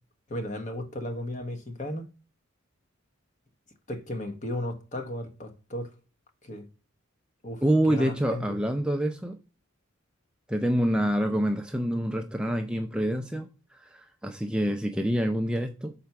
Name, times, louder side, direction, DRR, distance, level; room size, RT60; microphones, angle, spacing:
voice 1, 0.3-2.1 3.9-5.9 6.4-6.6 7.4-7.6 7.9-8.6, left 1 dB, 35° left, 1.0 m, -35 dB
voice 2, 7.6-9.4 10.5-15.9, equal, 5° right, 0.4 m, -27 dB
5.6 x 4.2 x 5.8 m
head